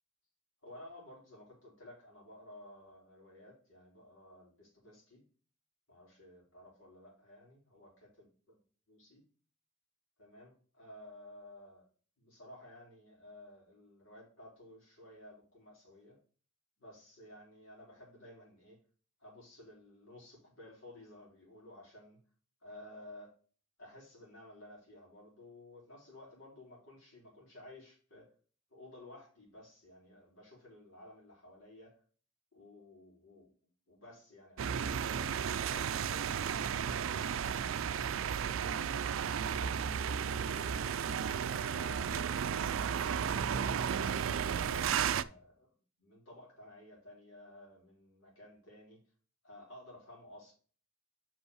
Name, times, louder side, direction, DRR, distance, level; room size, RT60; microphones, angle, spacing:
voice 1, 0.6-5.2 5.9-8.1 8.9-9.2 10.2-11.9 12.2-16.2 16.8-18.8 19.2-22.2 22.6-23.4 23.8-28.3 28.7-32.0 32.5-33.5 33.9-38.1 38.6-43.9 44.6-49.0 49.4-50.5, left 1 dB, 80° left, -3 dB, 4.2 m, -55 dB
sound 1, 34.6-45.2, right 7 dB, 90° right, 0.4 m, -33 dB
5.5 x 5.4 x 4.7 m, 0.40 s
head